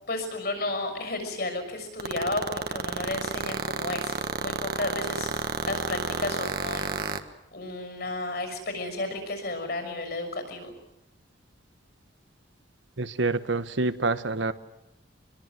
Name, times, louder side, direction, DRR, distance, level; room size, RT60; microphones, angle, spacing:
voice 1, 0.1-6.9 7.5-10.7, left 2 dB, 50° left, 6 dB, 6.5 m, -33 dB
sound 1, 2.0-7.2, right 4 dB, 50° right, 1.5 m, -29 dB
voice 2, 13.0-14.5, right 3 dB, 75° right, 12 dB, 1.3 m, -27 dB
25.5 x 22.0 x 7.8 m, 0.85 s
head